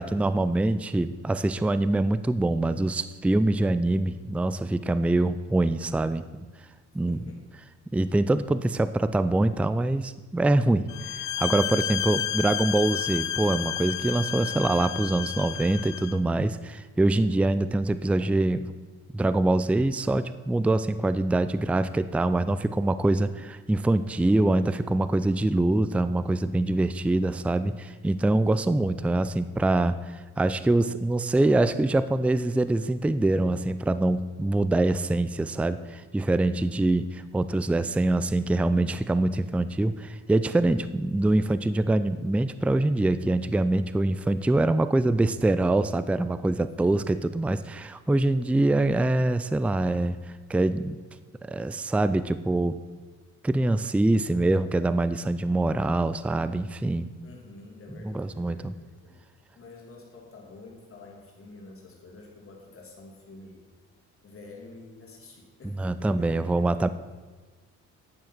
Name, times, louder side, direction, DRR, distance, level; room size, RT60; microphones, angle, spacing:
voice 1, 0.0-6.5 6.9-7.2 7.9-18.7 19.1-37.0 37.3-50.2 50.5-51.0 51.5-52.8 53.4-57.1 58.0-58.7 65.8-66.9, right 2 dB, 5° right, 13 dB, 0.4 m, -24 dB
voice 2, 7.1-7.4 11.7-12.2 28.4-29.0 36.5-37.0 46.8-47.3 57.2-59.2 59.5-63.6 64.2-66.7, left 2 dB, 45° left, -1 dB, 2.8 m, -48 dB
sound 1, 10.9-16.2, left 11 dB, 70° left, 0.8 m, -31 dB
10.5 x 7.1 x 6.1 m, 1.3 s
cardioid pair, 90°, 30 cm